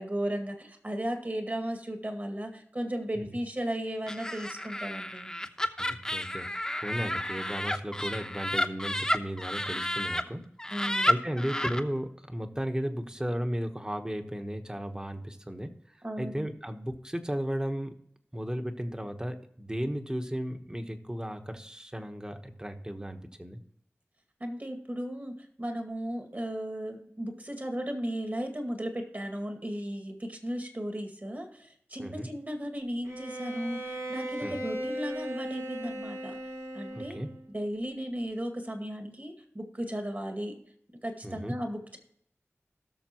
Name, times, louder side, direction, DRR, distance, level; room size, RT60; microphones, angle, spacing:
voice 1, 0.0-5.3 10.7-11.1 16.0-16.5 24.4-36.4 36.7-37.2 37.5-40.6 41.0-42.0, equal, 35° right, 4 dB, 2.1 m, -35 dB
Laughter, 4.1-10.2 10.6-11.8, left 1 dB, 15° left, 0.9 m, -31 dB
voice 2, 5.8-10.5 10.8-17.9 18.3-23.6 32.0-32.3 34.4-34.5 36.9-37.3 41.2-41.5, equal, 15° right, 6 dB, 1.2 m, -35 dB
Bowed string instrument, 33.0-37.5, right 1 dB, 65° right, 1.9 m, -37 dB
17.5 x 6.6 x 3.0 m, 0.67 s
wide cardioid pair, 60°, 5 cm